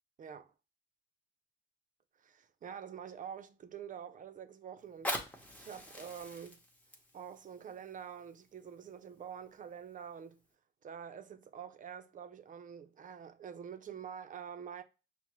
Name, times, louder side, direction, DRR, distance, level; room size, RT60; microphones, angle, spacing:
voice 1, 0.2-0.5 2.2-6.6 7.1-10.4 10.8-14.8, right 8 dB, 40° right, 0.4 m, -47 dB
Fire, 4.8-9.8 10.4-10.5, left 1 dB, 5° left, 0.8 m, -44 dB
5.8 x 2.0 x 2.9 m
cardioid pair, 90°, 20 cm